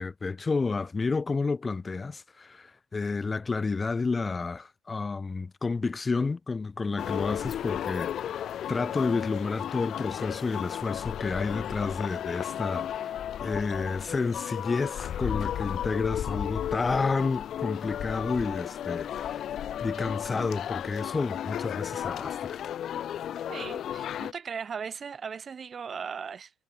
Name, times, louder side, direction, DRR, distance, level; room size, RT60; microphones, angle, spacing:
voice 1, 0.0-13.1 13.4-19.4 19.8-22.6, left 4 dB, 25° left, 3.6 m, -30 dB
sound 1, 7.0-24.3, left 10 dB, 55° left, 0.5 m, -34 dB
voice 2, 23.5-26.5, right 6 dB, 35° right, 1.5 m, -37 dB
supercardioid pair, 90°, 0 cm